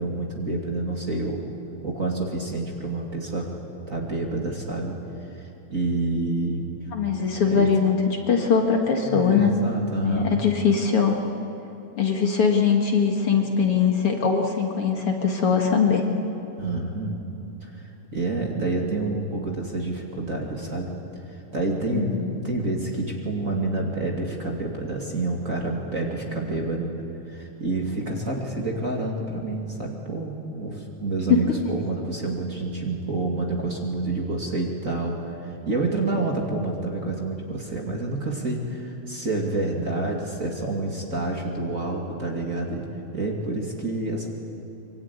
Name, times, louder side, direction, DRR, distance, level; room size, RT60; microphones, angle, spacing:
voice 1, 0.0-1.4 1.8-3.5 3.9-5.0 5.3-6.7 7.5-7.7 9.0-10.4 16.6-17.2 17.6-20.9 21.5-26.9 27.3-42.8 43.1-44.3, right 2 dB, 30° right, 0 dB, 2.6 m, -28 dB
voice 2, 6.9-9.5 10.0-11.2 12.0-16.0 21.9-22.3, left 6 dB, 50° left, 2 dB, 2.6 m, -21 dB
24.5 x 24.0 x 9.6 m, 3.0 s
omnidirectional pair, 3.3 m